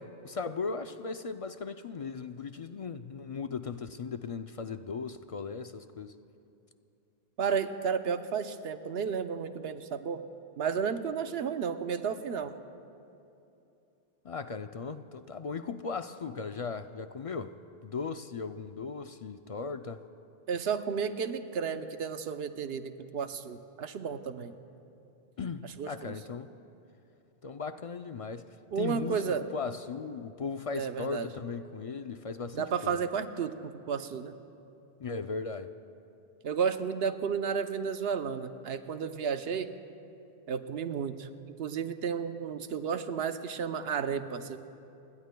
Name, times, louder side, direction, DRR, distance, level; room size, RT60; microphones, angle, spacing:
voice 1, 0.0-6.1 14.2-17.6 17.8-20.0 25.4-26.5 27.4-28.5 28.8-33.0 35.0-35.7, left 5 dB, 50° left, 9 dB, 0.4 m, -37 dB
voice 2, 7.4-10.2 10.6-12.6 20.5-24.5 25.6-26.1 28.7-29.4 30.8-31.3 32.5-34.3 36.4-39.7 40.5-41.3 41.6-44.6, right 6 dB, 80° right, 9 dB, 1.0 m, -32 dB
30.0 x 21.0 x 2.2 m, 2.8 s
omnidirectional pair, 1.0 m